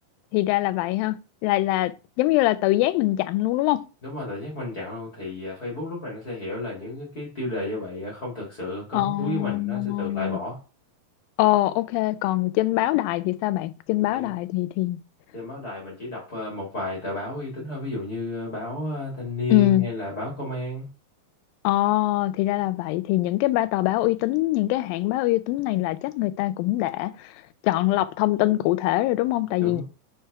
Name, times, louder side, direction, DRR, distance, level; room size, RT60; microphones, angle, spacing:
voice 1, 0.3-1.9 2.2-3.8 8.9-10.4 11.4-15.0 19.5-19.8 21.6-27.3 27.6-29.8, left 17 dB, 80° left, 2.2 m, -23 dB
voice 2, 4.0-10.6 14.1-14.3 15.3-20.9 29.6-29.8, left 2 dB, 40° left, 1.5 m, -32 dB
5.4 x 4.5 x 4.7 m
omnidirectional pair, 4.3 m